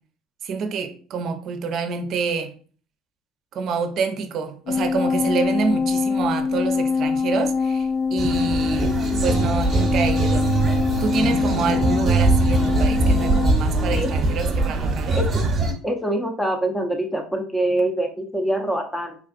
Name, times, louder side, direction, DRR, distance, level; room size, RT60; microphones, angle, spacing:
voice 1, 0.4-2.5 3.5-8.9 9.2-10.5 11.0-15.2, right 5 dB, 55° right, 0.5 m, -27 dB
sound 1, 4.7-13.5, left 5 dB, 60° left, 0.4 m, -23 dB
sound 2, 8.2-15.7, right 3 dB, 35° right, 1.0 m, -22 dB
voice 2, 15.1-15.5 15.8-19.2, right 1 dB, 5° left, 0.7 m, -24 dB
3.5 x 2.4 x 2.5 m
hypercardioid pair, 80°, 0 cm